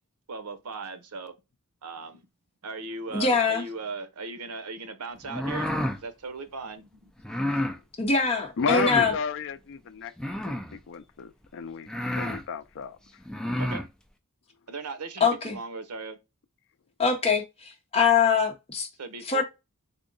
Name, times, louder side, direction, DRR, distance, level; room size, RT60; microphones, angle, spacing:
voice 1, 0.3-1.3 1.8-2.2 2.6-5.7 6.0-7.1 13.6-13.8 14.7-16.2 19.0-19.4, right 4 dB, 90° right, 0.8 m, -38 dB
voice 2, 3.1-3.7 8.0-9.1 15.2-15.6 17.0-18.9 19.2-19.4, left 5 dB, 25° left, 0.9 m, -23 dB
sound 1, 5.2-6.0 7.2-7.8 8.6-9.2 10.2-10.8 11.4-11.5 11.9-12.4 13.2-13.9, left 1 dB, 5° left, 0.4 m, -30 dB
voice 3, 8.6-10.1 10.4-11.9 12.1-13.0, left 6 dB, 60° left, 0.4 m, -32 dB
3.7 x 2.1 x 3.8 m
head